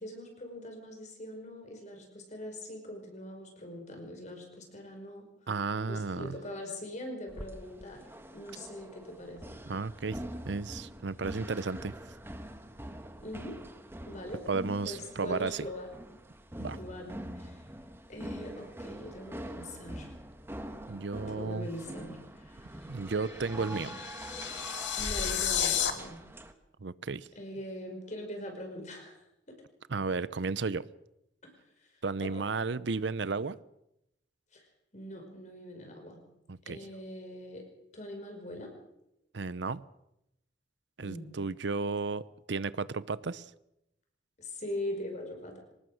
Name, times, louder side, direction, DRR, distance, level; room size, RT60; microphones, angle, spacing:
voice 1, 0.0-5.3 5.9-8.0 8.3-9.4 13.2-13.6 14.0-14.4 14.8-15.9 16.7-17.6 18.1-20.1 21.3-22.9 23.8-24.0 25.0-26.2 27.4-29.2 29.5-29.6 31.4-31.5 31.8-31.9 32.2-32.4 34.5-34.6 34.9-36.2 36.7-37.7 37.9-38.7 41.0-41.3 44.4-45.6, left 1 dB, 40° left, 3 dB, 5.5 m, -42 dB
voice 2, 5.5-6.4 9.7-12.0 14.5-15.7 16.6-16.8 20.9-21.7 22.9-24.0 26.8-27.3 29.9-30.9 32.0-33.6 36.5-36.8 39.3-39.8 41.0-43.5, right 4 dB, 70° right, 17 dB, 0.7 m, -33 dB
sound 1, 7.3-26.5, right 1 dB, 15° right, 1.4 m, -44 dB
sound 2, 23.2-25.9, left 9 dB, 75° left, 2.4 m, -32 dB
24.0 x 19.5 x 6.5 m, 0.85 s
head